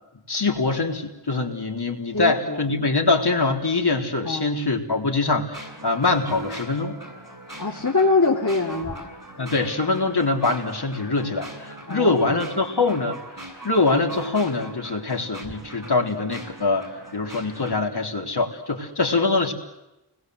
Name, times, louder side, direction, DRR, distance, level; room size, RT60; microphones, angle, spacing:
voice 1, 0.3-7.0 9.4-13.2 13.6-16.9 17.1-19.5, left 3 dB, 70° left, 1 dB, 3.8 m, -23 dB
voice 2, 2.1-2.6 4.2-4.5 7.6-9.1 11.9-12.4, left 3 dB, 45° left, -1 dB, 2.8 m, -23 dB
sound 1, 5.5-17.8, right 1 dB, 50° right, 7.5 m, -39 dB
29.5 x 21.0 x 7.9 m, 0.95 s
wide cardioid pair, 70°, 41 cm